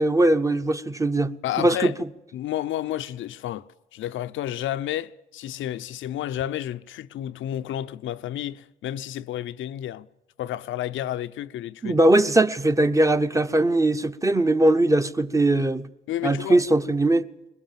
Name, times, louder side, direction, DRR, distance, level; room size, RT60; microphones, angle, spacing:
voice 1, 0.0-1.9 11.8-15.9 16.2-17.2, right 1 dB, 15° right, 0.9 m, -20 dB
voice 2, 1.4-2.0 2.3-3.7 3.9-10.1 10.4-12.0 16.1-16.6, left 12 dB, 75° left, 0.7 m, -31 dB
21.5 x 20.5 x 7.6 m
cardioid pair, 90°, 20 cm